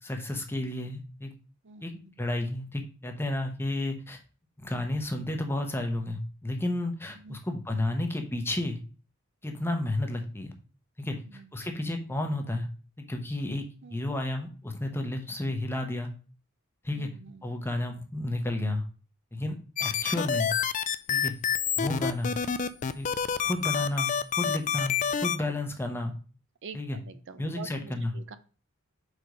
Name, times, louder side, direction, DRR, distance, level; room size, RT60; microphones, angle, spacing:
voice 1, 0.0-1.3 1.8-4.2 4.6-8.8 9.4-10.6 11.0-12.7 13.0-13.6 13.9-16.1 16.8-17.1 17.4-18.8 19.3-20.5 21.1-21.3 21.8-22.3 22.9-23.1 23.4-26.1 26.7-27.0 27.4-28.1, left 1 dB, 10° left, 4 dB, 0.9 m, -32 dB
voice 2, 1.6-2.1 7.1-7.4 11.1-11.5 13.8-14.0 16.9-17.5 26.6-28.4, right 5 dB, 55° right, 12 dB, 0.6 m, -46 dB
sound 1, 19.8-25.4, left 7 dB, 35° left, 0.4 m, -28 dB
5.2 x 4.9 x 5.2 m, 0.37 s
head